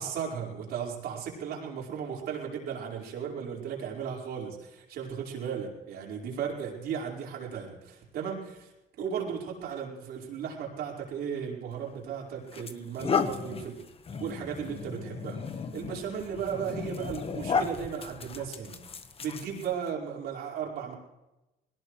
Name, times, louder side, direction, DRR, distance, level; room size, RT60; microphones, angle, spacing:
voice 1, 0.0-8.7 9.0-13.8 14.2-18.8 19.2-20.9, right 7 dB, 70° right, -1 dB, 4.8 m, -36 dB
sound 1, 11.7-11.9 12.5-19.9, left 5 dB, 35° left, 1.3 m, -34 dB
21.5 x 18.5 x 3.2 m, 0.99 s
cardioid pair, 110°, 17 cm